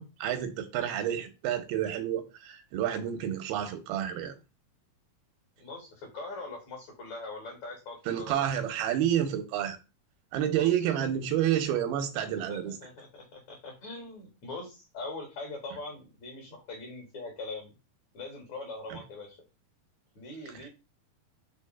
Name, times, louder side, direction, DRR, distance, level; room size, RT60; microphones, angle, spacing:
voice 1, 0.0-4.4 8.1-9.8 10.3-12.8 18.9-19.0, right 10 dB, 90° right, 2.6 m, -29 dB
voice 2, 5.6-8.4 10.5-10.7 12.3-17.7 18.1-19.4 20.2-20.7, left 3 dB, 60° left, 2.0 m, -42 dB
6.0 x 3.2 x 2.3 m
omnidirectional pair, 4.3 m